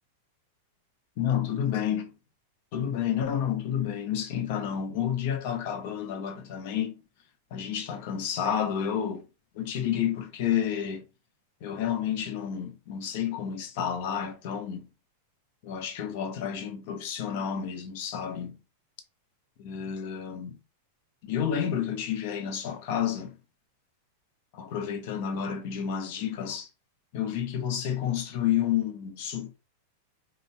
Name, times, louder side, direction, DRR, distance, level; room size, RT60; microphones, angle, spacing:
voice 1, 1.2-2.1 2.7-7.0 7.5-9.3 9.5-11.0 11.6-14.9 15.6-18.6 19.6-20.6 21.2-23.4 24.5-26.7 27.1-29.6, left 9 dB, 60° left, 0.7 m, -30 dB
2.6 x 2.1 x 3.3 m
hypercardioid pair, 115°, 0 cm